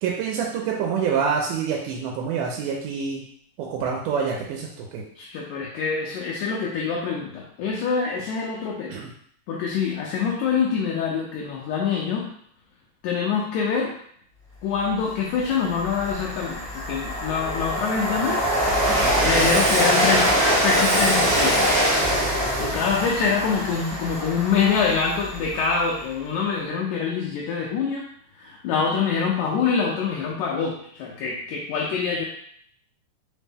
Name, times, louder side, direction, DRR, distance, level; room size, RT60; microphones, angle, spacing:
voice 1, 0.0-3.2 3.6-5.0 8.9-9.1 19.0-19.1, right 6 dB, 85° right, -1 dB, 2.0 m, -26 dB
voice 2, 5.2-8.9 9.5-12.3 13.0-13.9 14.6-16.6 16.9-18.4 19.2-20.3 20.6-21.6 22.6-28.1 28.4-32.3, left 5 dB, 80° left, -2 dB, 1.8 m, -25 dB
Train, 14.9-15.0 15.4-25.8, equal, 65° right, 0.5 m, -23 dB
5.1 x 2.1 x 3.3 m, 0.65 s
omnidirectional pair, 3.7 m